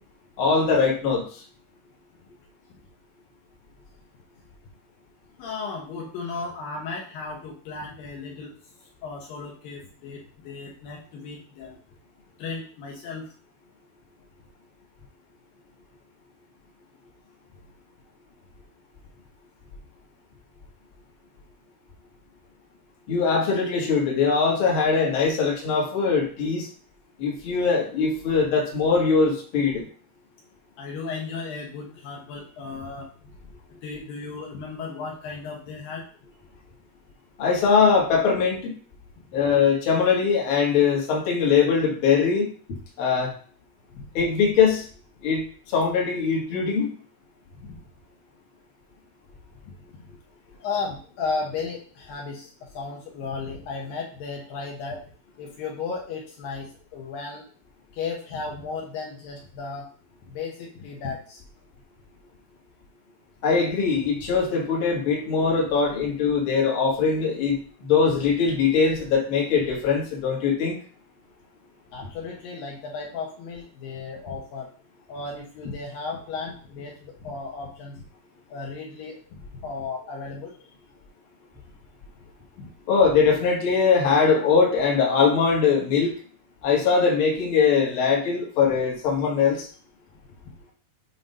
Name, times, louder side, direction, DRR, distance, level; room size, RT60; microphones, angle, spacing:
voice 1, 0.4-1.4 23.1-26.7 27.2-29.8 37.4-38.7 39.3-42.5 43.0-43.3 44.1-44.8 45.2-45.4 45.7-46.9 63.4-70.8 82.9-86.1 86.6-89.7, left 5 dB, 50° left, -2 dB, 1.6 m, -21 dB
voice 2, 5.4-11.8 12.4-13.3 30.8-33.3 33.8-36.1 43.9-44.0 47.5-47.8 49.7-50.2 50.6-55.0 55.4-57.4 57.9-59.9 60.2-61.4 71.9-74.7 75.1-78.0 78.5-80.5 82.6-82.7, left 4 dB, 70° left, -1 dB, 2.4 m, -35 dB
7.4 x 2.9 x 5.3 m, 0.43 s
omnidirectional pair, 4.8 m